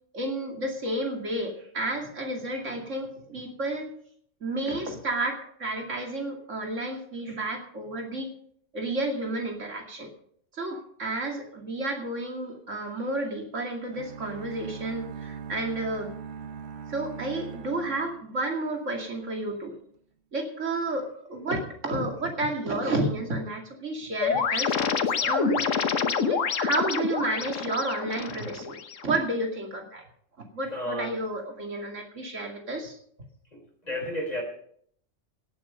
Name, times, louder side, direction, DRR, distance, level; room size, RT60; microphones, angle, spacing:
voice 1, 0.1-3.9 4.4-8.3 8.7-10.1 10.5-16.1 16.9-19.7 20.3-24.7 25.2-25.7 26.0-28.8 29.0-30.0 30.5-33.0, right 2 dB, 75° right, 2 dB, 2.8 m, -31 dB
sound 1, 13.9-18.9, right 6 dB, 60° right, 1.1 m, -41 dB
sound 2, 24.2-29.2, left 6 dB, 85° left, 1.5 m, -27 dB
voice 2, 30.7-31.2 33.5-34.4, equal, 30° left, 2 dB, 3.9 m, -32 dB
18.0 x 8.6 x 5.2 m, 0.63 s
omnidirectional pair, 1.3 m